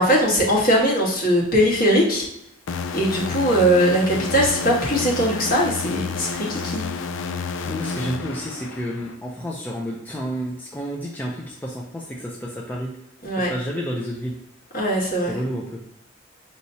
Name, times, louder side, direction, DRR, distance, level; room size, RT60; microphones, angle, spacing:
voice 1, 0.0-2.3 2.9-6.8 13.2-13.5 14.7-15.4, equal, 50° left, -3 dB, 1.5 m, -20 dB
sound 1, 2.7-9.2, left 5 dB, 75° left, 0.4 m, -30 dB
voice 2, 7.6-13.0 13.4-14.4 15.3-15.8, equal, 10° left, -3 dB, 0.5 m, -30 dB
5.6 x 3.1 x 2.7 m, 0.79 s
head